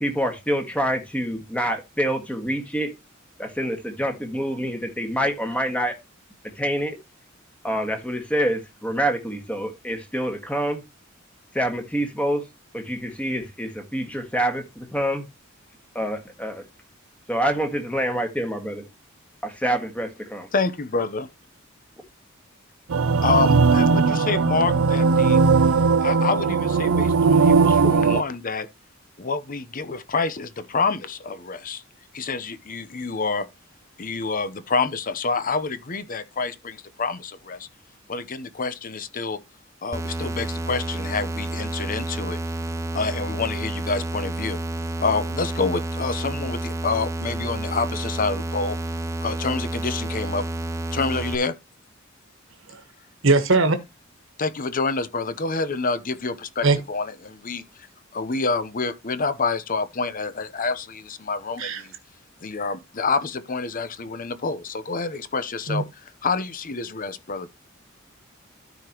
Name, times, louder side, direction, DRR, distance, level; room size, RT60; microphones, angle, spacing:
voice 1, 0.0-2.9 3.4-5.9 6.6-7.0 7.6-10.8 11.5-12.4 12.7-15.3 16.0-16.6 17.3-18.8 19.4-20.5, equal, 5° left, 1.7 m, -26 dB
voice 2, 20.5-21.3 23.2-25.4 26.0-28.7 29.2-31.8 32.1-33.4 34.0-37.7 38.1-39.4 39.8-42.4 42.9-44.6 45.0-48.7 49.2-50.4 50.9-51.5 54.4-57.6 58.1-61.9 62.4-65.8 66.2-67.5, left 4 dB, 45° left, 0.9 m, -27 dB
sound 1, 22.9-28.2, right 4 dB, 85° right, 0.5 m, -18 dB
sound 2, 39.9-51.4, right 2 dB, 15° right, 0.6 m, -30 dB
voice 3, 53.2-53.8 56.6-56.8 61.6-61.8 65.7-65.8, right 3 dB, 65° right, 1.5 m, -20 dB
13.0 x 5.0 x 3.0 m
head